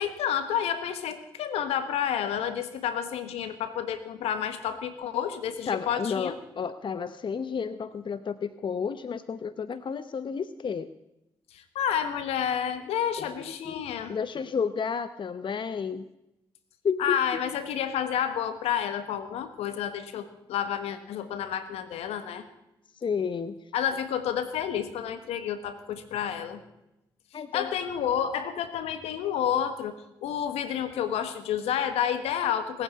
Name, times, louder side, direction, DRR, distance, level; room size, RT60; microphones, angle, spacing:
voice 1, 0.0-6.4 11.5-14.2 17.0-22.4 23.7-26.6 27.5-29.9 30.2-32.8, left 9 dB, 80° left, 11 dB, 1.4 m, -30 dB
voice 2, 5.7-10.9 13.2-16.1 16.8-17.2 22.9-23.6 27.3-27.7, left 6 dB, 50° left, 13 dB, 0.8 m, -31 dB
19.0 x 8.8 x 8.4 m, 0.88 s
hypercardioid pair, 40°, 10 cm